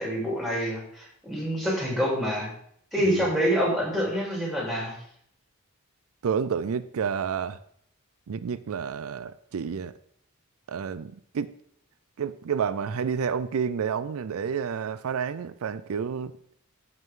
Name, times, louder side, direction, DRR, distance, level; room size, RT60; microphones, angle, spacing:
voice 1, 0.0-2.5 2.9-5.0, equal, ahead, 3.5 m, -26 dB
voice 2, 6.2-7.6 8.3-9.9 10.7-11.5 12.2-16.3, right 6 dB, 85° right, 0.4 m, -30 dB
14.5 x 5.8 x 3.7 m
head